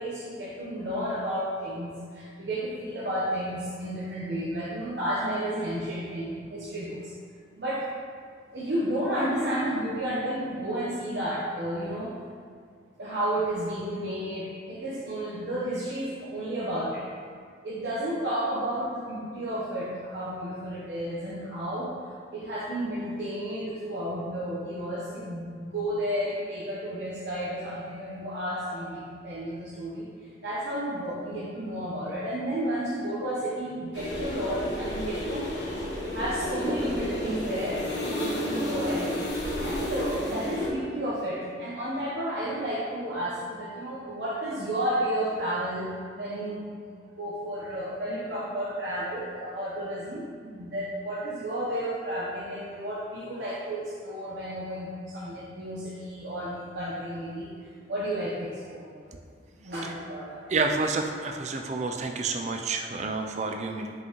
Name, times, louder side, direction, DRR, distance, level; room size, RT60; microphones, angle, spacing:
voice 1, 0.0-7.1 7.6-7.9 8.5-12.1 13.0-17.1 17.6-35.5 36.1-39.0 39.6-57.5 57.9-59.1 59.6-60.4, right 1 dB, 70° right, -8 dB, 1.0 m, -32 dB
sound 1, 33.9-40.7, left 1 dB, 75° left, 1.3 m, -31 dB
voice 2, 60.5-63.9, right 3 dB, 40° right, 4 dB, 0.4 m, -29 dB
5.7 x 5.4 x 3.1 m, 2.1 s
head